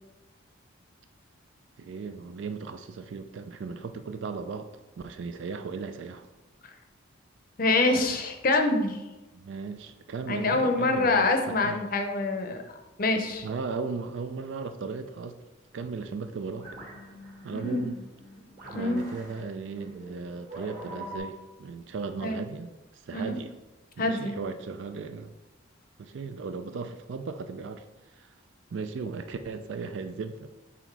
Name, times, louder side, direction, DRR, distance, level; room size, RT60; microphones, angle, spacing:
voice 1, 1.8-4.7 5.0-6.3 9.3-11.8 13.4-15.4 15.7-16.7 17.4-18.0 18.7-23.5 24.0-25.3 26.0-28.4 28.7-30.5, right 4 dB, 65° right, 8 dB, 0.4 m, -36 dB
voice 2, 7.6-9.0 10.3-13.5 17.5-17.9 18.7-19.1 22.2-22.4 23.1-23.4 24.0-24.3, left 2 dB, 45° left, 5 dB, 0.6 m, -26 dB
sound 1, 16.0-21.2, right 1 dB, 40° right, 1.6 m, -45 dB
5.8 x 3.6 x 4.6 m, 1.1 s
head